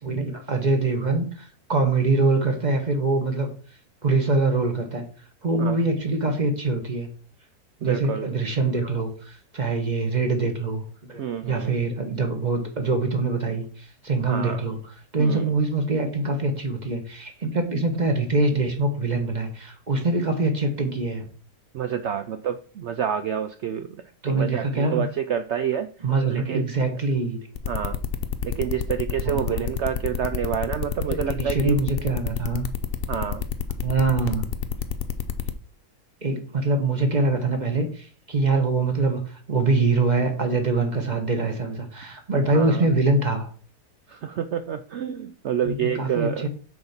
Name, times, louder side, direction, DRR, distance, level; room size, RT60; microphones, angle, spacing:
voice 1, 0.0-3.5 4.0-5.1 5.4-7.1 7.8-10.8 11.1-14.8 15.1-21.2 24.2-25.1 26.0-27.4 29.2-29.6 31.3-32.7 33.8-34.5 36.2-43.5 45.6-46.5, right 3 dB, 30° right, 5 dB, 1.1 m, -24 dB
voice 2, 7.8-8.4 11.2-11.8 14.2-14.7 15.2-15.5 21.7-25.9 26.3-26.7 27.7-28.0 28.4-31.8 33.1-33.5 42.5-42.8 44.1-46.5, right 8 dB, 90° right, 9 dB, 0.6 m, -28 dB
sound 1, 27.6-35.5, left 8 dB, 70° left, 0.5 m, -28 dB
6.3 x 4.5 x 5.8 m, 0.42 s
omnidirectional pair, 1.7 m